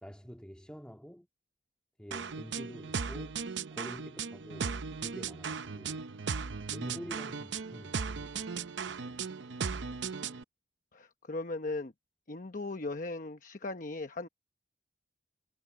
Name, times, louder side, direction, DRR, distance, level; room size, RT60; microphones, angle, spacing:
voice 1, 0.0-1.3 2.0-3.4 3.7-6.0 6.7-9.2, equal, 5° left, 1.9 m, -48 dB
sound 1, 2.1-10.4, right 5 dB, 75° right, 0.7 m, -37 dB
voice 2, 10.9-11.9 12.3-14.3, left 2 dB, 45° left, 1.0 m, -38 dB
head